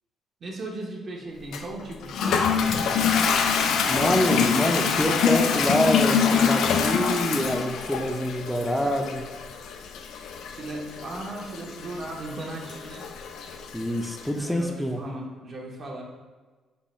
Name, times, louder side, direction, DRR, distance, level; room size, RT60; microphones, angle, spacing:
voice 1, 0.4-2.6 10.6-13.1 14.3-16.0, right 2 dB, 50° right, -1 dB, 0.8 m, -37 dB
Toilet flush, 1.5-14.3, left 6 dB, 80° left, 0.3 m, -25 dB
voice 2, 3.9-9.2 13.7-15.0, equal, 5° left, 3 dB, 0.4 m, -26 dB
5.2 x 2.1 x 3.1 m, 1.3 s
cardioid pair, 90°, 0 cm